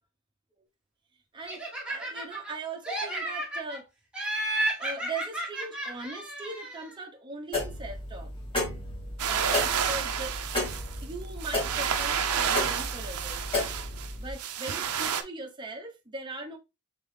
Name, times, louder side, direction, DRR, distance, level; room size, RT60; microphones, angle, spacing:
voice 1, 1.3-3.9 4.8-8.3 9.2-10.4 11.0-13.4 14.2-16.6, right 3 dB, 20° right, 0.9 m, -40 dB
Laughter, 1.5-2.5 2.8-3.8 4.1-6.9, right 1 dB, 5° right, 1.4 m, -33 dB
sound 1, 7.5-14.3, left 2 dB, 25° left, 1.8 m, -33 dB
sound 2, 9.2-15.2, right 8 dB, 85° right, 0.6 m, -30 dB
3.7 x 3.7 x 3.2 m
head